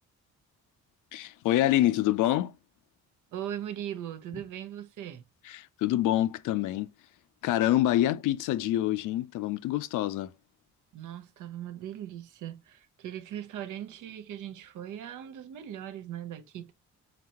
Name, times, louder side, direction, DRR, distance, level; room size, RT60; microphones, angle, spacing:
voice 1, 1.1-2.5 5.5-6.9 7.4-10.3, left 14 dB, 85° left, 0.5 m, -26 dB
voice 2, 3.3-5.2 10.9-16.7, right 10 dB, 80° right, 0.7 m, -39 dB
4.3 x 4.0 x 2.9 m
cardioid pair, 90°, 30 cm